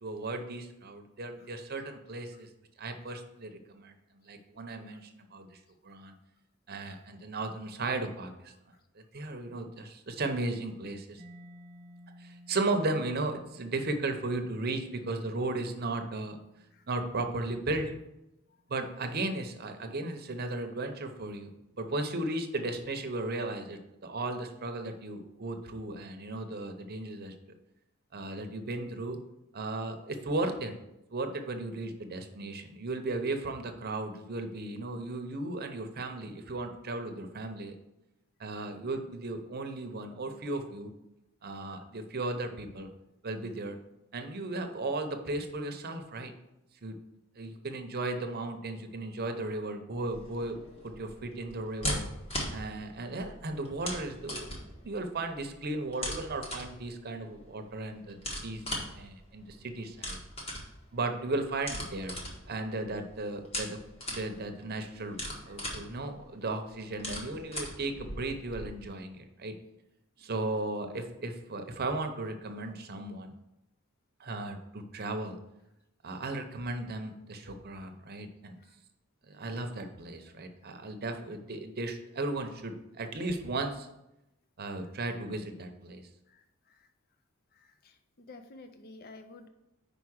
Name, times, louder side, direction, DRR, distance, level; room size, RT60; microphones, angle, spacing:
voice 1, 0.0-2.5 2.8-3.9 4.3-6.1 6.7-8.5 8.9-11.2 12.2-16.4 16.9-17.9 18.7-21.5 21.8-27.3 28.1-29.2 29.5-30.7 31.1-37.7 38.4-40.9 41.4-42.9 43.2-43.8 44.1-46.3 46.8-47.0 47.4-50.6 50.8-52.0 52.5-60.2 60.9-62.2 62.5-63.8 64.1-65.2 65.4-69.5 70.2-73.3 74.2-75.4 76.0-78.6 79.3-83.9 84.6-86.1, right 2 dB, 45° right, 6 dB, 0.7 m, -35 dB
Mallet percussion, 11.2-18.7, equal, 10° right, 1.0 m, -56 dB
sound 1, 50.1-68.7, equal, 30° left, 1.5 m, -40 dB
voice 2, 86.3-86.9 87.5-89.5, left 2 dB, 45° left, 7 dB, 0.5 m, -52 dB
5.1 x 4.8 x 6.2 m, 0.89 s
head